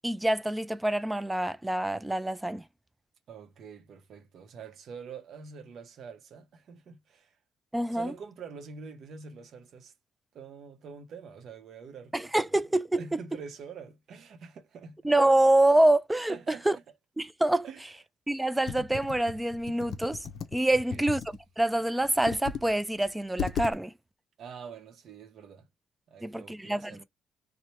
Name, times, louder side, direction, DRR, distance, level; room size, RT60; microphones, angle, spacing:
voice 1, 0.0-2.6 7.7-8.1 12.1-13.2 15.0-16.4 16.7-16.8 17.2-17.7 18.3-20.2 20.5-21.2 21.6-23.9 26.2-27.0, right 1 dB, 10° right, 0.3 m, -26 dB
voice 2, 3.3-7.3 7.9-9.9 10.3-12.1 12.4-12.5 13.0-15.0 16.3-16.8 17.6-17.9 20.7-21.0 24.4-25.7 26.1-27.0, right 6 dB, 65° right, 0.7 m, -45 dB
Computer keyboard, 18.7-21.4 22.0-22.7 23.0-23.1 23.4-23.7, left 6 dB, 70° left, 0.4 m, -36 dB
3.1 x 2.1 x 2.9 m
cardioid pair, 90°, 0 cm